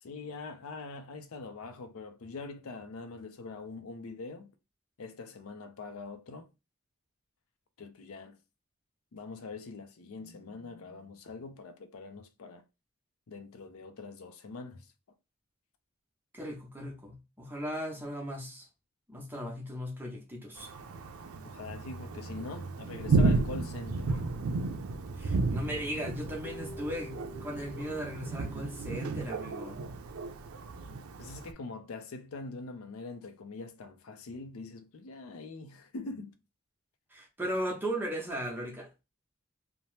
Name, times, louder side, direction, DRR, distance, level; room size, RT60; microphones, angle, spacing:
voice 1, 0.0-4.5 5.0-6.5 7.8-8.4 9.1-12.6 13.3-14.9 21.4-24.2 31.2-36.3, left 3 dB, 80° left, 0.5 m, -43 dB
voice 2, 16.3-18.7 19.1-20.7 25.2-27.1 27.4-29.8 37.1-38.9, equal, 10° right, 0.7 m, -37 dB
Thunder, 20.6-31.5, right 3 dB, 80° right, 0.4 m, -33 dB
Keyboard (musical), 26.4-29.7, right 1 dB, 30° left, 0.9 m, -49 dB
2.8 x 2.0 x 3.1 m
head